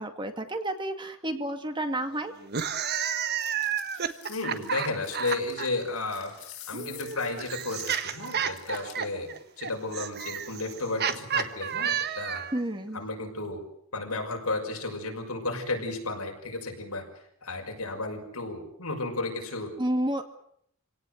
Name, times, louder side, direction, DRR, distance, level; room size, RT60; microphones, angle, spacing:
voice 1, 0.0-2.3 12.5-13.0 19.8-20.2, right 1 dB, 20° right, 7 dB, 2.1 m, -30 dB
sound 1, 2.4-5.7 6.7-12.6, right 8 dB, 50° right, 1.4 m, -31 dB
sound 2, 3.2-9.1, left 11 dB, 70° left, 4.3 m, -47 dB
voice 2, 4.3-6.3 6.7-12.4 12.9-13.6 13.9-17.0 17.4-19.7, left 2 dB, 85° left, 2 dB, 6.1 m, -33 dB
27.0 x 17.5 x 8.0 m, 0.70 s
head